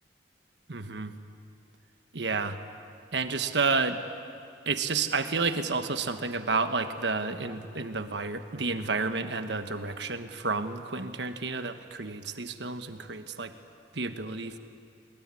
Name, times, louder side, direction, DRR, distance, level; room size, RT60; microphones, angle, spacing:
voice 1, 0.7-1.1 2.1-2.6 3.1-4.0 4.6-13.5 13.9-14.6, right 4 dB, 75° right, 8 dB, 1.3 m, -30 dB
22.0 x 21.0 x 9.8 m, 2.5 s
head